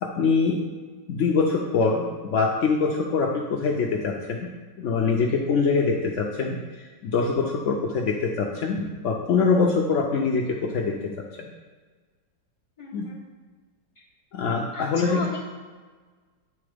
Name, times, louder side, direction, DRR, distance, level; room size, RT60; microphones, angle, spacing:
voice 1, 0.0-0.6 1.1-4.5 4.8-11.1 11.4-11.5 12.9-13.1 14.3-15.3, left 4 dB, 70° left, 0 dB, 0.7 m, -24 dB
voice 2, 12.8-13.2 13.9-14.0 14.7-15.4, left 3 dB, 20° left, -5 dB, 1.4 m, -36 dB
8.9 x 3.8 x 5.0 m, 1.4 s
omnidirectional pair, 1.9 m